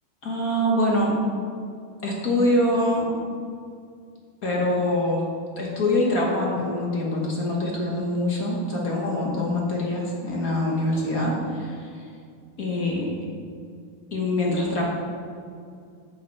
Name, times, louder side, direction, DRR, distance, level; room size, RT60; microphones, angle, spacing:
voice 1, 0.2-1.1 2.0-3.1 4.4-5.2 5.6-12.0 12.6-13.2 14.1-14.8, left 1 dB, 45° left, -3 dB, 1.1 m, -24 dB
8.7 x 8.2 x 4.8 m, 2.3 s
omnidirectional pair, 3.7 m